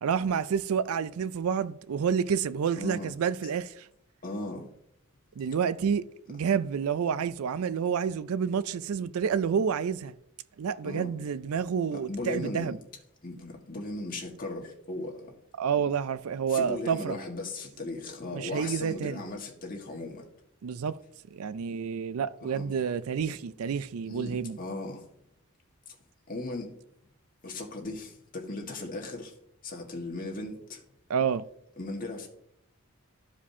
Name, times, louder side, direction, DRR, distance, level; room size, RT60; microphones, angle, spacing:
voice 1, 0.0-3.9 5.4-10.1 10.6-12.8 15.6-17.2 18.3-19.2 20.6-21.0 21.3-24.6 31.1-31.4, right 7 dB, 80° right, 0.4 m, -29 dB
voice 2, 2.8-3.1 4.2-4.7 10.8-11.1 11.9-12.7 13.2-15.3 16.5-20.2 22.4-22.7 24.1-25.0 25.9-26.0 26.3-26.7 27.4-29.3 29.6-30.8 31.8-32.3, left 2 dB, 40° left, 1.6 m, -37 dB
13.5 x 4.9 x 2.8 m
head